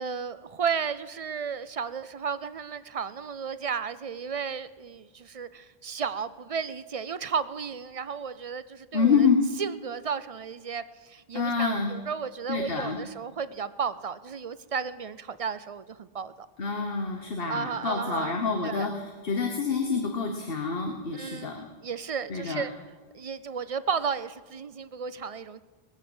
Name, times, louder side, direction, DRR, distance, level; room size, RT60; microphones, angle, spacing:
voice 1, 0.0-9.1 9.6-16.5 17.5-18.3 18.6-18.9 21.1-21.5 21.8-22.7 23.1-25.6, right 6 dB, 50° right, 15 dB, 0.4 m, -33 dB
voice 2, 8.9-9.4 11.3-11.9 12.5-13.0 16.6-21.7 22.3-22.6, left 5 dB, 65° left, 4 dB, 1.4 m, -27 dB
20.0 x 7.4 x 8.0 m, 1.4 s
omnidirectional pair, 1.1 m